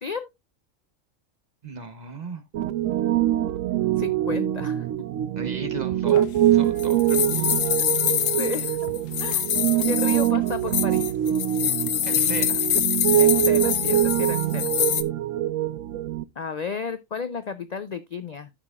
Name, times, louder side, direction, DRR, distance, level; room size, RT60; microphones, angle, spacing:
voice 1, 1.6-2.4 5.3-6.2 6.5-7.5 12.0-12.6, right 3 dB, 35° right, 1.0 m, -36 dB
Piano, 2.5-16.2, right 12 dB, 80° right, 1.0 m, -24 dB
voice 2, 4.0-4.9 8.4-8.8 9.2-9.6 9.9-11.1 13.2-14.7 16.4-18.5, left 5 dB, 55° left, 0.5 m, -33 dB
sound 1, 6.1-15.0, left 11 dB, 85° left, 1.1 m, -25 dB
13.5 x 5.8 x 2.4 m
omnidirectional pair, 1.3 m